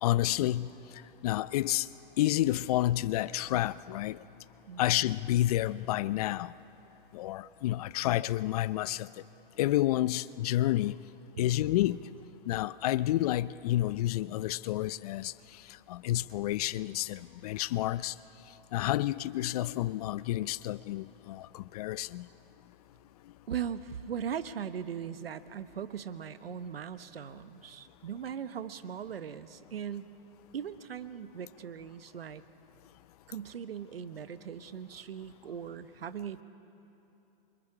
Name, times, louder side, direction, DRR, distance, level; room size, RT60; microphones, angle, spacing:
voice 1, 0.0-0.7 1.2-1.9 2.2-4.2 4.8-6.5 7.1-9.1 9.6-11.0 11.4-12.0 12.5-15.3 15.9-18.1 18.7-22.3, left 14 dB, 40° left, 0.5 m, -29 dB
voice 2, 23.5-30.1 30.5-32.4 33.3-36.4, right 8 dB, 85° right, 1.1 m, -39 dB
29.0 x 25.5 x 4.9 m
hypercardioid pair, 135°, 29 cm